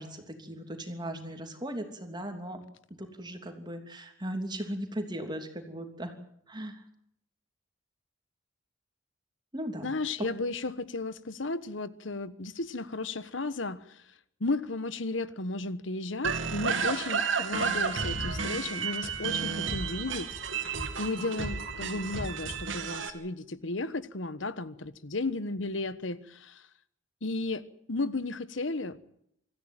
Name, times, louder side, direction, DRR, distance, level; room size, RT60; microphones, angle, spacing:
voice 1, 0.0-2.6 3.0-6.1 6.5-6.8 9.5-9.9, right 1 dB, 25° right, 3.0 m, -38 dB
voice 2, 9.8-14.0 14.4-20.3 20.7-26.7 27.2-27.6 27.9-29.0, left 3 dB, 70° left, 1.3 m, -34 dB
sound 1, 16.2-23.1, right 5 dB, 75° right, 2.8 m, -32 dB
25.5 x 14.5 x 9.1 m
head